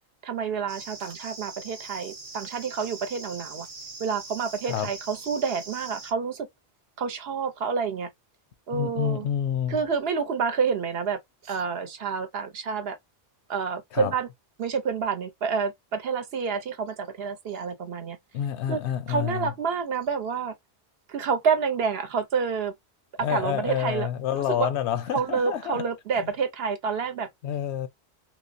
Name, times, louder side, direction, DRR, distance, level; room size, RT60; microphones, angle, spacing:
voice 1, 0.2-3.7 4.0-6.5 7.0-8.1 8.7-9.3 9.7-13.0 13.5-14.3 14.6-18.2 18.7-18.8 19.1-20.5 21.1-22.7 23.2-24.7 25.1-27.3, right 5 dB, 65° right, 0.9 m, -28 dB
sound 1, 0.7-6.1, right 3 dB, 40° right, 0.6 m, -42 dB
voice 2, 8.7-9.8 13.9-14.1 18.3-19.5 23.2-25.8 26.2-26.3 27.4-27.9, left 9 dB, 80° left, 0.9 m, -28 dB
3.1 x 3.0 x 2.6 m
omnidirectional pair, 1.1 m